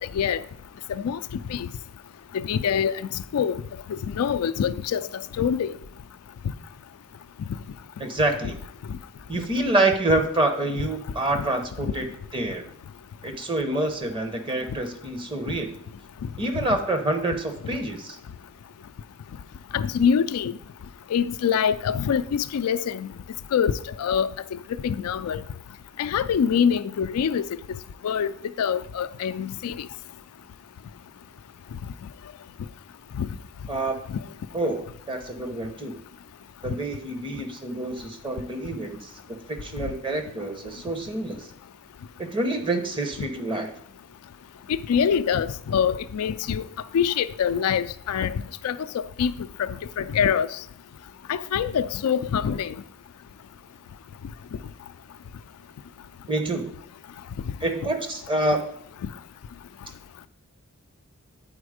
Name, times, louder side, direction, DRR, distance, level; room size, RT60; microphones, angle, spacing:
voice 1, 2.3-3.6 3.9-5.1 5.4-5.7 19.7-20.5 21.1-23.1 23.5-23.7 24.0-24.3 24.8-25.4 26.0-27.5 28.0-28.3 28.6-29.9 33.2-33.3 34.1-34.2 44.7-46.7 46.9-50.5 51.3-52.7 59.0-59.1, left 7 dB, 85° left, 0.3 m, -25 dB
voice 2, 8.0-8.5 9.3-12.1 12.3-12.6 13.2-15.7 16.4-18.2 33.7-34.0 34.5-35.9 36.6-39.0 39.3-41.5 42.2-43.7 56.3-56.7 57.6-58.7, right 2 dB, 20° right, 0.8 m, -27 dB
8.7 x 4.3 x 4.9 m
head